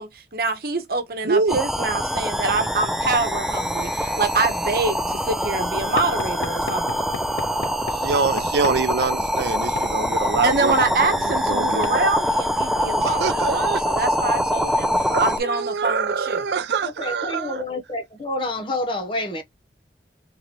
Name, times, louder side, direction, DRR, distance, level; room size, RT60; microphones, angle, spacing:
voice 1, 0.0-7.1 10.4-14.9 15.2-16.4, right 3 dB, 55° right, 0.9 m, -25 dB
voice 2, 1.2-1.6 7.9-12.1 13.0-13.8 15.1-17.7, right 5 dB, 75° right, 0.5 m, -25 dB
sound 1, 1.5-15.4, equal, ahead, 0.4 m, -24 dB
Knock / Wood, 6.0-8.9 9.8-9.9 10.8-11.0 11.8-12.0, left 5 dB, 80° left, 0.5 m, -33 dB
voice 3, 17.0-19.4, left 2 dB, 30° left, 0.7 m, -28 dB
3.8 x 3.0 x 2.9 m
head